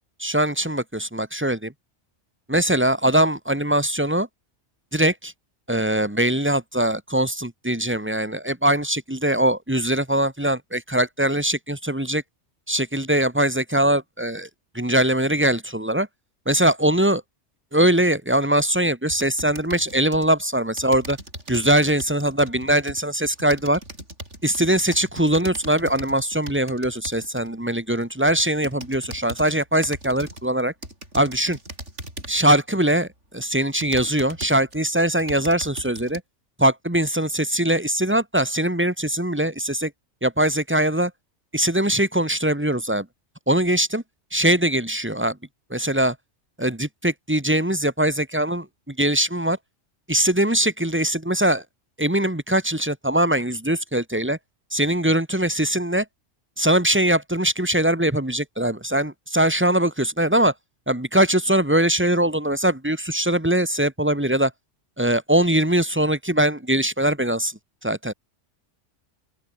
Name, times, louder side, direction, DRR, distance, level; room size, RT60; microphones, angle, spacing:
voice 1, 0.2-1.7 2.5-4.3 4.9-5.3 5.7-12.2 12.7-14.5 14.7-16.1 16.5-17.2 17.7-21.2 21.5-23.8 24.4-30.7 31.1-31.6 32.3-33.1 33.3-36.2 36.6-39.9 40.2-41.1 41.5-43.1 43.5-44.0 44.3-45.4 45.7-46.2 46.6-49.6 50.1-51.6 52.0-54.4 54.7-56.1 56.6-60.5 60.9-64.5 65.0-68.1, right 1 dB, 10° right, 2.0 m, -21 dB
sound 1, 19.1-20.3 20.8-27.5 28.0-29.5 29.8-30.5 30.8-32.5 33.1-33.2 33.8-34.8 35.1-36.2, right 1 dB, 75° right, 8.3 m, -39 dB
open air
omnidirectional pair, 1.2 m